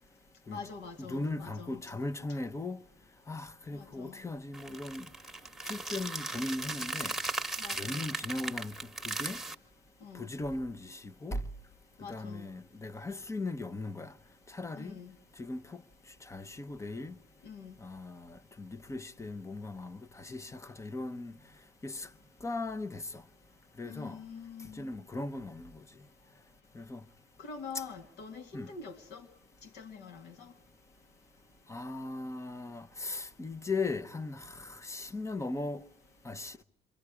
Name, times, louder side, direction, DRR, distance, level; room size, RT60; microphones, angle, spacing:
voice 1, 0.5-1.8 3.7-4.3 7.6-8.1 10.0-10.3 12.0-12.5 14.7-15.1 17.4-17.8 23.8-24.9 27.4-29.3 29.6-30.5, left 5 dB, 80° left, 2.1 m, -45 dB
voice 2, 1.0-2.8 3.3-5.1 5.7-7.1 7.8-8.7 9.0-9.4 10.1-11.4 12.1-14.1 14.5-14.9 15.4-15.8 16.2-17.1 17.8-21.4 21.8-22.1 22.4-23.2 23.8-24.2 24.7-25.7 26.7-27.0 27.7-27.8 28.5-28.7 31.7-35.8 36.2-36.6, left 2 dB, 15° left, 0.8 m, -38 dB
sound 1, 4.5-9.5, right 2 dB, ahead, 1.3 m, -37 dB
27.5 x 23.0 x 4.8 m
cardioid pair, 110°, 17 cm